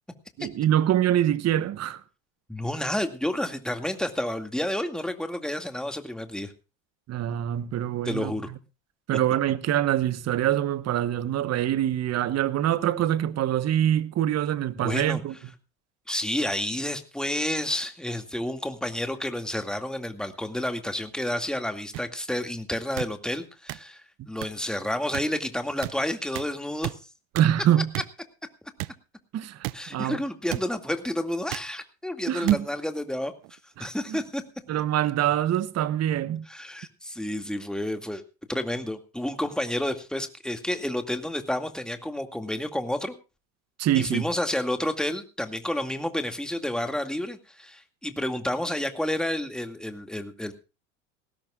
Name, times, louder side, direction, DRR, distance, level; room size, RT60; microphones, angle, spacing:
voice 1, 0.4-2.0 7.1-8.3 9.1-15.3 27.3-27.9 29.3-29.7 29.9-30.2 32.3-32.6 33.8-34.2 34.7-36.4 43.8-44.3, right 11 dB, 40° right, 1.2 m, -24 dB
voice 2, 2.5-6.5 8.0-8.5 14.8-15.2 16.1-24.0 24.3-26.9 29.7-33.3 33.8-34.4 36.5-38.2 38.5-43.1 43.9-50.5, left 1 dB, ahead, 2.3 m, -30 dB
sound 1, 21.9-22.0 23.0-23.1 23.7-23.8 24.4-24.5 25.1-25.2 25.8-25.9 26.4-26.5 26.8-27.0 27.4-27.5 27.9-28.1 28.8-28.9 29.6-29.8 30.5-30.6 31.5-31.7 32.5-32.6 33.4-33.6, right 22 dB, 60° right, 0.7 m, -33 dB
20.0 x 16.5 x 2.5 m
hypercardioid pair, 85°, 38 cm